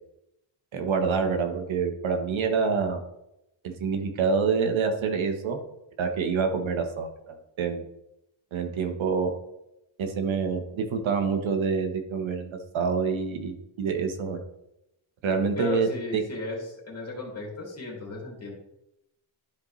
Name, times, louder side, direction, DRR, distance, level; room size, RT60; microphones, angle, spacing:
voice 1, 0.7-3.0 3.6-5.6 6.0-7.8 8.5-9.3 10.0-14.4 15.2-16.2, right 5 dB, 70° right, 6 dB, 1.3 m, -27 dB
voice 2, 15.6-18.5, left 3 dB, 30° left, -2 dB, 2.8 m, -35 dB
12.0 x 5.1 x 3.2 m, 0.85 s
cardioid pair, 135°, 49 cm